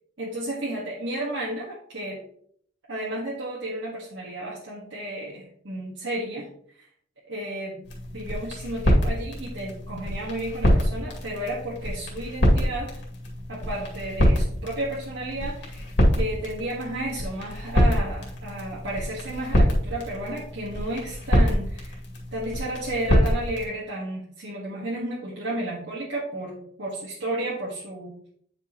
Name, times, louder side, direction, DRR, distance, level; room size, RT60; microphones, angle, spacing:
voice 1, 0.2-2.2 2.9-6.5 6.8-6.9 7.3-7.8 8.1-13.0 13.5-15.9 16.2-22.0 22.3-28.1, right 1 dB, 80° right, -5 dB, 1.5 m, -32 dB
sound 1, 7.8-23.7, equal, 70° left, 2.1 m, -25 dB
9.1 x 5.2 x 2.9 m, 0.63 s
head